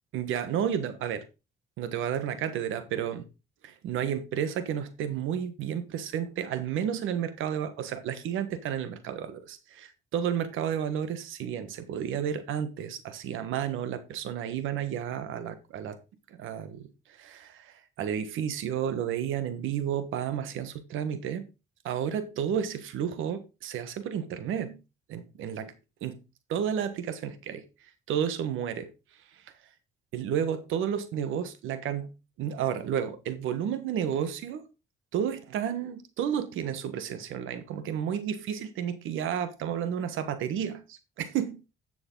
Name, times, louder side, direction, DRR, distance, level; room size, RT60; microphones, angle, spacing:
voice 1, 0.1-1.2 1.8-3.3 3.6-16.0 16.3-21.4 21.8-24.8 25.1-25.7 26.0-26.1 26.5-27.6 28.1-28.9 29.3-29.4 30.1-32.1 32.4-34.6 35.1-41.6, right 9 dB, 85° right, 1.4 m, -31 dB
10.5 x 7.0 x 3.8 m
cardioid pair, 90°, 20 cm